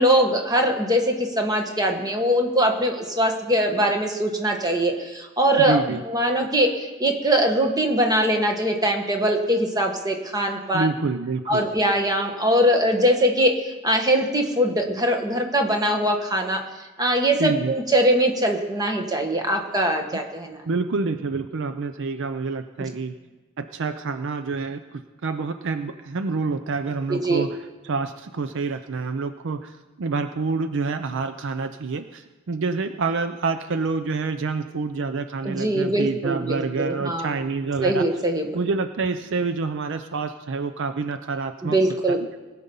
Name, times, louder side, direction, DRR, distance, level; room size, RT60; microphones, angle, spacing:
voice 1, 0.0-10.9 11.5-16.6 17.0-20.6 22.8-22.9 27.1-27.5 35.4-37.4 37.8-38.5 41.6-42.2, right 1 dB, 15° right, 3 dB, 1.3 m, -22 dB
voice 2, 5.6-6.0 10.7-11.6 17.4-17.7 20.7-23.1 23.6-27.5 27.8-29.7 30.0-32.2 32.5-38.1 38.5-41.8 42.1-42.2, right 4 dB, 55° right, 9 dB, 0.5 m, -27 dB
19.5 x 6.8 x 5.4 m, 1.2 s
head